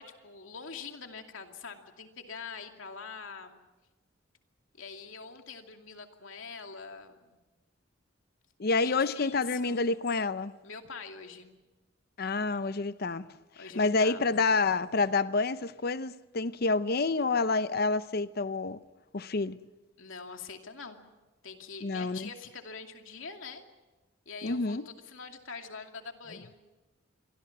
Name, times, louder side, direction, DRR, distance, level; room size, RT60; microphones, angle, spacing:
voice 1, 0.0-3.6 4.7-7.4 8.8-10.0 10.6-11.5 13.6-14.4 20.0-21.0 21.4-23.6 24.3-26.6, left 5 dB, 90° left, 2.5 m, -44 dB
voice 2, 8.6-10.5 12.2-13.3 13.7-18.8 19.1-19.6 21.8-22.3 24.4-24.9, left 3 dB, 50° left, 0.7 m, -28 dB
28.0 x 23.5 x 6.0 m
head